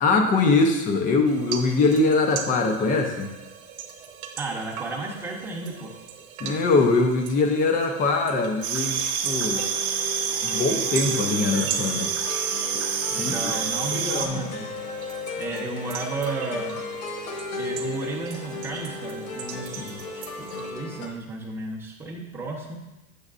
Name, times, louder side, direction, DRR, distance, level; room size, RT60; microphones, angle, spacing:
voice 1, 0.0-3.3 6.4-9.7 10.4-12.1 12.7-12.8 13.2-13.5 13.9-14.4 19.8-20.0, left 3 dB, 20° left, 4 dB, 0.4 m, -22 dB
sound 1, 1.3-20.7, right 8 dB, 70° right, 0.8 m, -40 dB
voice 2, 4.4-5.9 13.1-14.7 15.4-16.8 17.6-20.2 20.5-22.7, right 3 dB, 5° right, -3 dB, 0.8 m, -33 dB
sound 2, 8.6-14.3, right 7 dB, 40° right, 0.7 m, -27 dB
sound 3, 9.5-21.1, left 3 dB, 50° left, 1.1 m, -35 dB
6.9 x 6.7 x 2.4 m, 1.0 s
supercardioid pair, 140°, 44 cm